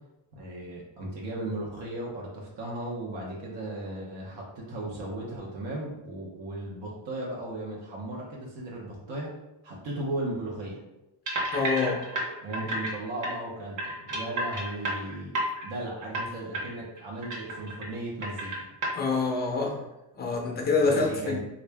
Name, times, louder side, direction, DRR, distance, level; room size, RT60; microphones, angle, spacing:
voice 1, 0.3-9.3 9.6-10.8 12.4-15.3 15.6-18.6 20.8-21.4, right 1 dB, 70° right, -3 dB, 0.9 m, -36 dB
sound 1, 11.3-12.9 13.2-13.3 13.8-15.6 16.0-16.2 16.5-16.7 17.0-17.9 18.2-18.9, right 1 dB, 45° right, 1.0 m, -31 dB
voice 2, 11.5-12.0 18.9-19.8 20.1-21.4, left 4 dB, 25° left, 1 dB, 0.5 m, -26 dB
3.4 x 2.6 x 3.3 m, 0.97 s
cardioid pair, 170°, 43 cm